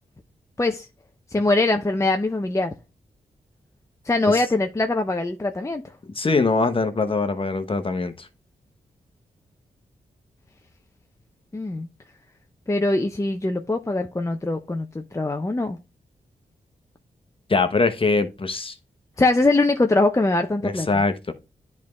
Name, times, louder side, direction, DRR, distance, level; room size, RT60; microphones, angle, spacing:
voice 1, 1.3-2.7 4.0-5.8 11.5-11.9 12.7-15.8 19.2-21.0, left 2 dB, 20° left, 0.6 m, -22 dB
voice 2, 6.1-8.3 17.5-18.8 20.6-21.3, left 3 dB, 35° left, 1.1 m, -22 dB
10.0 x 3.6 x 3.1 m
cardioid pair, 65°, 16 cm